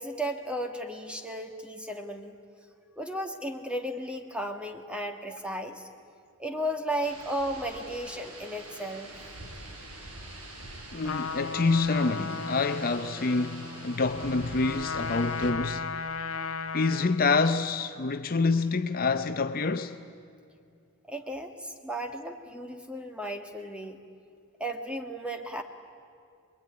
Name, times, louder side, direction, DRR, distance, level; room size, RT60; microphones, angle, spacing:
voice 1, 0.0-2.4 3.0-5.9 6.4-9.1 21.1-24.0 24.6-25.6, right 1 dB, 5° right, 1.6 m, -34 dB
sound 1, 7.0-15.5, right 1 dB, 85° right, 5.1 m, -45 dB
voice 2, 10.9-15.9 16.7-20.0, left 3 dB, 40° left, 0.7 m, -27 dB
Trumpet, 11.0-17.3, left 4 dB, 65° left, 1.2 m, -36 dB
26.0 x 21.5 x 9.7 m
head